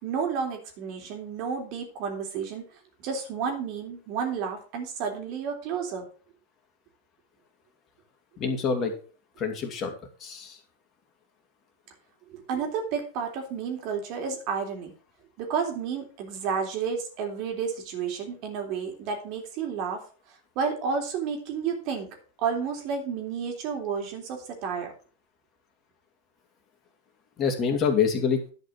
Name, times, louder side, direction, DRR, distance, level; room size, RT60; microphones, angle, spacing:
voice 1, 0.0-2.7 3.0-6.1 12.3-14.9 15.4-22.1 22.4-24.9, right 6 dB, 50° right, 3 dB, 3.4 m, -31 dB
voice 2, 8.4-8.9 9.4-9.9 10.2-10.6 27.4-28.4, left 6 dB, 35° left, 4 dB, 2.7 m, -26 dB
11.0 x 5.4 x 5.9 m, 0.39 s
hypercardioid pair, 95°, 0 cm